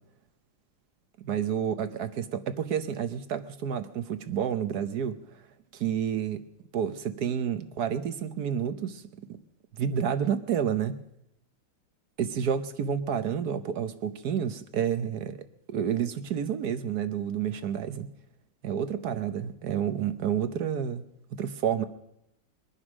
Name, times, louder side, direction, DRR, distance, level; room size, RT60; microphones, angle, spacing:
voice 1, 1.2-5.2 5.7-6.4 6.7-9.0 9.3-9.4 9.8-11.0 12.2-18.1 18.6-21.0 21.3-21.8, right 8 dB, 60° right, 10 dB, 1.2 m, -30 dB
22.5 x 9.9 x 6.2 m, 0.83 s
omnidirectional pair, 2.2 m